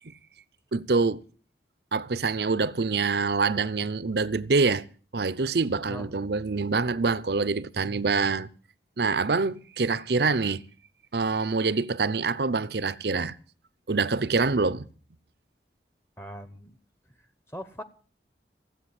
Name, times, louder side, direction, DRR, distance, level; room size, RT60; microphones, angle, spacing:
voice 1, 0.7-1.2 1.9-4.8 5.1-8.5 9.0-10.6 11.1-13.4 13.9-14.9, right 4 dB, 65° right, 0.7 m, -25 dB
voice 2, 5.8-6.1 16.2-16.8 17.2-17.8, equal, 15° left, 0.9 m, -41 dB
16.0 x 8.0 x 9.6 m
head